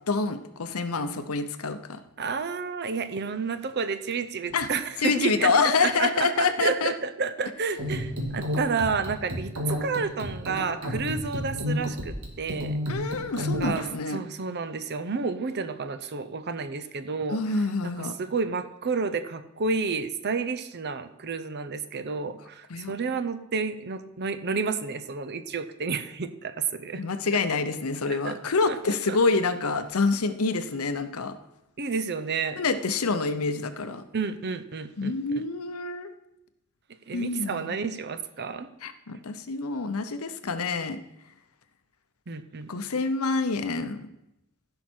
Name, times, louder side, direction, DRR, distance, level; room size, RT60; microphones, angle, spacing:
voice 1, 0.1-2.0 4.5-4.7 5.0-6.9 12.9-14.2 17.3-18.1 22.7-22.9 27.0-31.3 32.6-34.0 35.0-36.1 37.1-37.7 38.8-41.0 42.7-44.1, left 4 dB, 80° left, 10 dB, 0.8 m, -27 dB
voice 2, 2.2-13.8 14.1-27.0 28.1-28.4 28.7-28.8 29.1-29.2 31.8-32.6 34.1-35.4 37.1-38.7 42.3-42.7, right 4 dB, 50° right, 11 dB, 0.7 m, -31 dB
sound 1, 7.8-13.8, equal, 85° right, 2.0 m, -30 dB
15.0 x 5.7 x 4.4 m, 0.87 s
head